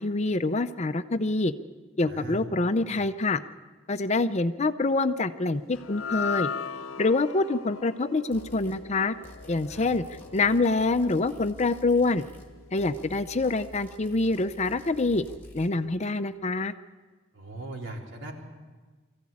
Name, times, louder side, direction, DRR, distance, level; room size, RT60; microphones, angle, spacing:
voice 1, 0.0-1.5 2.0-3.4 3.9-6.5 7.0-9.1 9.5-10.0 10.3-12.3 12.7-15.2 15.5-16.7, left 3 dB, 35° left, 10 dB, 0.6 m, -26 dB
voice 2, 2.1-2.4 9.7-9.9 17.3-18.3, right 2 dB, 65° right, 0 dB, 3.9 m, -39 dB
sound 1, 5.7-12.1, left 6 dB, 85° left, 0.7 m, -38 dB
sound 2, 8.3-8.8 9.2-12.5 12.8-15.7, equal, 10° left, 2.3 m, -49 dB
23.5 x 15.5 x 8.6 m, 1.4 s
head